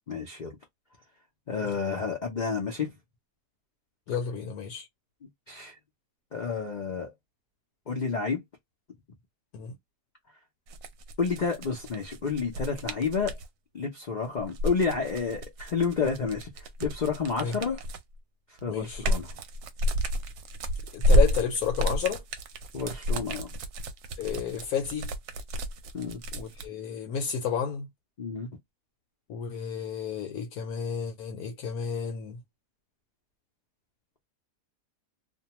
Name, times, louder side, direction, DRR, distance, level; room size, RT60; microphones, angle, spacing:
voice 1, 0.1-0.6 1.5-2.9 5.5-5.7 6.3-7.1 7.9-8.4 11.2-13.4 13.7-17.8 18.6-19.4 22.7-23.5 25.9-26.2 28.2-28.5, left 5 dB, 90° left, 0.4 m, -30 dB
voice 2, 4.1-4.9 9.5-9.8 17.4-17.6 18.7-19.0 20.9-22.2 24.2-25.1 26.3-27.9 29.3-32.4, left 7 dB, 70° left, 1.0 m, -31 dB
sound 1, 10.7-13.5 14.4-18.2 18.6-26.7, equal, 75° right, 1.0 m, -29 dB
2.6 x 2.2 x 2.9 m
omnidirectional pair, 1.8 m